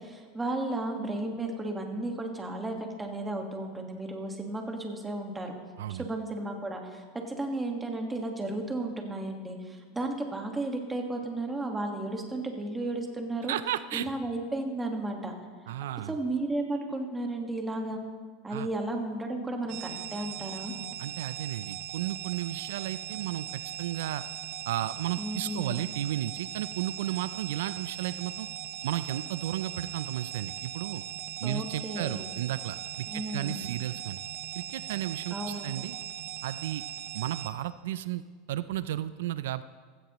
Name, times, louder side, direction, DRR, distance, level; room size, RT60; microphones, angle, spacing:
voice 1, 0.0-5.5 5.9-13.5 13.9-15.3 16.1-18.0 18.4-20.7 25.2-25.7 31.4-32.3 33.1-33.6 35.3-35.7, right 2 dB, 10° right, 2 dB, 1.6 m, -34 dB
voice 2, 13.5-14.1 15.7-16.1 18.5-18.7 21.0-24.2 24.7-28.5 28.8-31.0 31.4-34.2 34.5-35.4 35.6-36.0 36.4-36.8 37.1-39.6, right 13 dB, 85° right, 15 dB, 0.4 m, -33 dB
sound 1, 19.7-37.5, right 12 dB, 55° right, 0.7 m, -39 dB
16.0 x 14.5 x 3.0 m, 1.5 s
supercardioid pair, 145°, 0 cm